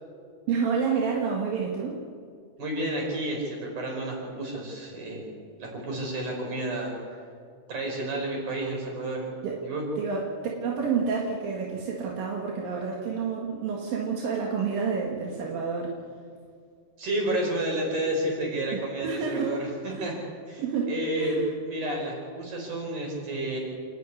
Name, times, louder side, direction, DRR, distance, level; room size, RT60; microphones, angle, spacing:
voice 1, 0.5-2.0 9.4-9.6 10.0-16.0 18.7-19.6 19.9-20.1 20.6-20.9 21.2-21.5, right 5 dB, 85° right, -1 dB, 3.6 m, -29 dB
voice 2, 2.6-5.3 5.6-6.9 7.7-9.3 9.6-9.8 17.0-20.1 20.5-21.4 21.6-23.6, right 1 dB, 60° right, 0 dB, 6.6 m, -31 dB
28.5 x 12.0 x 9.8 m, 2.2 s
omnidirectional pair, 3.9 m